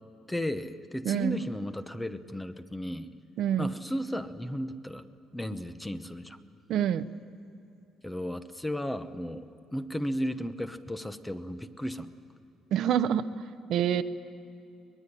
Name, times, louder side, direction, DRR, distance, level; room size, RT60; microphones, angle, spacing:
voice 1, 0.3-3.1 3.6-5.1 5.3-6.4 8.0-12.1, equal, 5° left, 10 dB, 0.9 m, -34 dB
voice 2, 1.1-1.4 3.4-3.7 6.7-7.1 12.7-13.3 13.7-14.0, right 9 dB, 65° right, 11 dB, 0.8 m, -26 dB
24.0 x 20.5 x 9.9 m, 2.8 s
cardioid pair, 140°, 0 cm